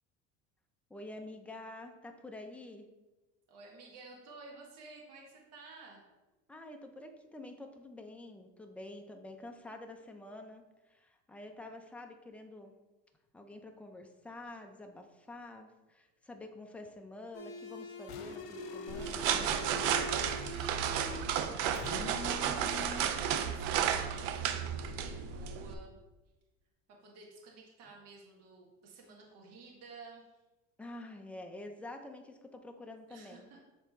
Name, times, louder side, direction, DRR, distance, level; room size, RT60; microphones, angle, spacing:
voice 1, 0.9-2.9 6.5-12.7 13.3-20.0 30.8-33.5, left 2 dB, 5° left, 4 dB, 0.6 m, -48 dB
voice 2, 3.5-6.0 21.7-22.7 23.4-26.0 26.9-30.2 33.1-33.6, right 3 dB, 55° right, -2 dB, 1.7 m, -53 dB
sound 1, 17.3-21.3 21.7-23.1, left 3 dB, 70° left, 1.0 m, -43 dB
Opening popcorn bag, 18.9-25.7, right 9 dB, 80° right, 0.7 m, -33 dB
7.3 x 3.6 x 4.1 m, 1.1 s
supercardioid pair, 120°, 30 cm